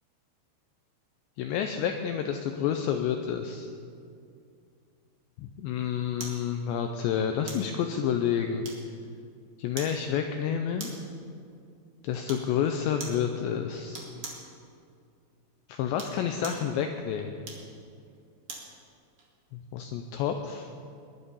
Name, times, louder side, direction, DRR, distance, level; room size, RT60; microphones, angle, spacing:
voice 1, 1.4-3.7 5.4-8.7 9.6-10.9 12.0-14.1 15.7-17.4 19.5-20.7, left 8 dB, 80° left, 5 dB, 2.6 m, -29 dB
sound 1, 6.2-6.4 7.5-7.7 8.6-9.1 9.8-10.0 10.8-11.1 12.3-12.5 13.0-13.2 13.9-14.5 15.8-16.7 17.4-18.7 19.2-19.3, right 3 dB, 45° right, 2.0 m, -41 dB
21.0 x 11.0 x 5.5 m, 2.4 s
omnidirectional pair, 5.8 m